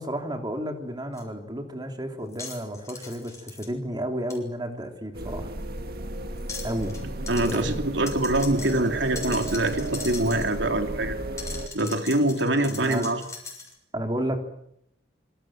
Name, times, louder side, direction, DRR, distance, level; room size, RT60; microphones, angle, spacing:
voice 1, 0.0-5.5 6.6-7.0 7.4-7.8 12.7-13.1 13.9-14.4, equal, 25° right, 4 dB, 3.5 m, -32 dB
sound 1, 1.2-1.3 2.3-3.7 4.3-4.4 6.4-7.0 7.3-7.6 8.1-10.6 11.4-13.7, left 4 dB, 15° left, 7.0 m, -40 dB
sound 2, 5.1-11.7, right 1 dB, 55° right, 1.9 m, -33 dB
voice 2, 7.3-11.1 11.7-13.2, right 1 dB, 80° right, 5 dB, 3.4 m, -24 dB
26.5 x 25.0 x 7.7 m, 0.77 s
head